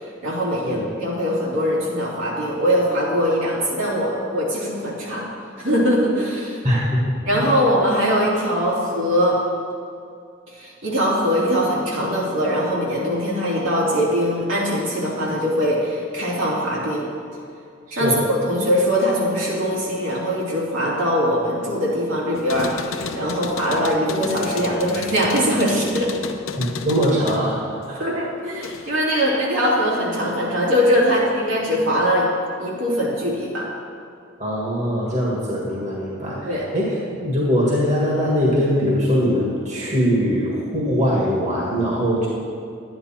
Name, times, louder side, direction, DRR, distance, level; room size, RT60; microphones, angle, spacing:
voice 1, 0.2-5.3 5.6-6.6 7.3-9.4 10.6-17.1 17.9-26.1 28.0-32.3 32.6-33.7 36.4-36.6, equal, 75° right, -6 dB, 2.9 m, -21 dB
voice 2, 6.6-7.5 18.0-18.2 26.6-27.6 27.9-28.1 34.4-42.3, equal, 35° right, -5 dB, 1.7 m, -22 dB
sound 1, 22.4-29.1 29.4-30.3, left 4 dB, 90° left, 0.7 m, -33 dB
11.5 x 9.6 x 4.3 m, 2.4 s
head